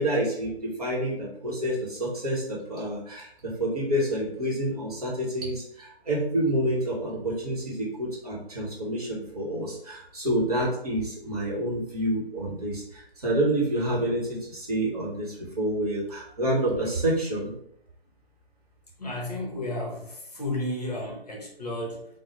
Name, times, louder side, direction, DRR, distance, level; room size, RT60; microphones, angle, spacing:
voice 1, 0.0-17.5, right 1 dB, 40° right, -4 dB, 0.9 m, -28 dB
voice 2, 19.0-22.1, left 1 dB, 40° left, -2 dB, 0.8 m, -32 dB
3.7 x 2.0 x 3.0 m, 0.72 s
figure-of-eight pair, 155°, 31 cm